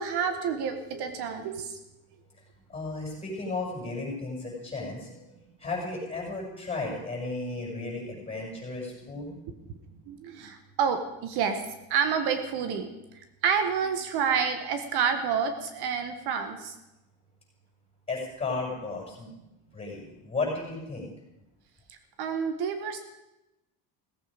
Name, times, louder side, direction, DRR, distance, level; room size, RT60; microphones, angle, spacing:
voice 1, 0.0-1.8 10.1-11.6 11.9-12.9 13.4-16.7 21.9-23.0, right 6 dB, 60° right, 7 dB, 1.5 m, -29 dB
voice 2, 2.7-9.4 18.1-19.3 19.7-21.1, left 3 dB, 15° left, -2 dB, 6.5 m, -34 dB
17.0 x 15.0 x 5.1 m, 0.94 s
cardioid pair, 170°, 43 cm